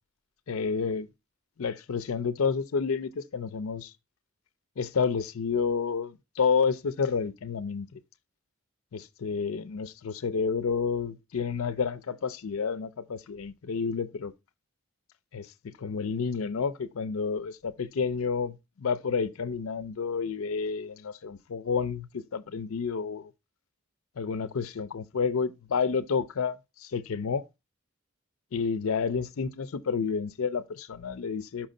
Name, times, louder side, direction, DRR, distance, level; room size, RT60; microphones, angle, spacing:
voice 1, 0.5-1.1 1.6-3.9 4.8-8.0 8.9-14.3 15.3-15.5 15.8-23.3 24.2-27.5 28.5-31.7, left 5 dB, 75° left, 0.5 m, -30 dB
5.9 x 5.2 x 3.8 m
head